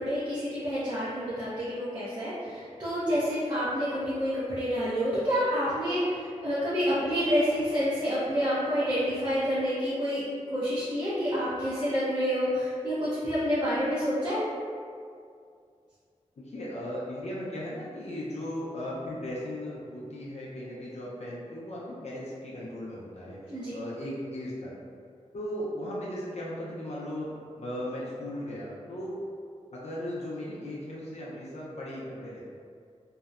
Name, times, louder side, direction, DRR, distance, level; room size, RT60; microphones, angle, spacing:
voice 1, 0.0-10.2 10.5-14.4 23.5-23.7, equal, 35° right, -13 dB, 0.6 m, -28 dB
voice 2, 16.4-24.7 25.3-29.2 29.7-32.4, left 1 dB, 60° left, -6 dB, 0.4 m, -37 dB
2.7 x 2.0 x 2.4 m, 2.3 s
wide cardioid pair, 65°, 13 cm